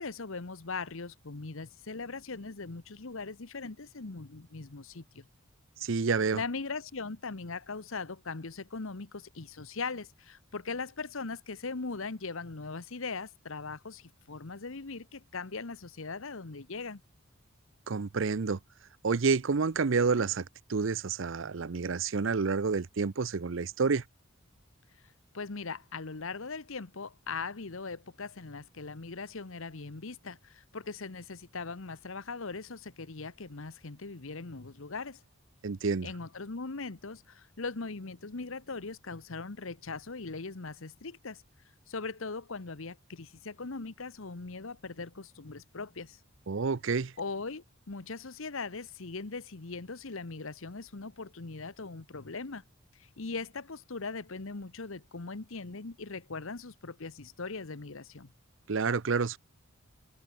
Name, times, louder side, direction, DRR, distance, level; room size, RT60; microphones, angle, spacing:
voice 1, 0.0-5.3 6.3-17.0 25.3-35.2 36.0-41.4 41.9-46.2 47.2-52.6 52.9-58.3, left 4 dB, 70° left, 1.1 m, -40 dB
voice 2, 5.8-6.4 17.9-18.6 19.0-24.0 35.6-36.1 46.5-47.1 58.7-59.4, right 4 dB, 60° right, 0.6 m, -29 dB
head